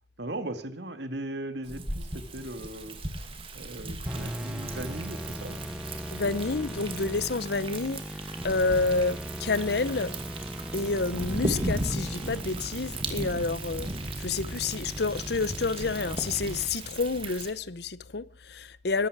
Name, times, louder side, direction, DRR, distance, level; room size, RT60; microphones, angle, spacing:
voice 1, 0.2-3.3 3.5-5.6 6.2-6.3, right 1 dB, 70° right, 2.0 m, -38 dB
Thunder, 1.6-17.5, right 1 dB, 30° right, 2.6 m, -37 dB
sound 1, 4.0-16.7, equal, 5° right, 1.1 m, -39 dB
voice 2, 6.1-8.0 8.4-10.1 10.7-13.9 14.2-19.1, left 3 dB, 65° left, 0.8 m, -29 dB
22.5 x 13.0 x 4.9 m
head